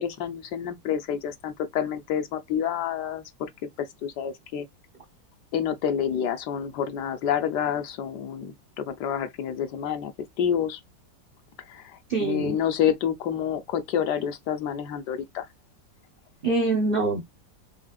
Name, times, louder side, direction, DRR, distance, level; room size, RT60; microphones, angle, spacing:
voice 1, 0.0-3.5 3.8-4.7 5.5-10.1 10.4-10.8 11.7-15.5, left 8 dB, 70° left, 1.2 m, -28 dB
voice 2, 12.1-12.6 16.4-17.2, right 3 dB, 55° right, 0.6 m, -24 dB
5.0 x 3.4 x 2.3 m
omnidirectional pair, 2.0 m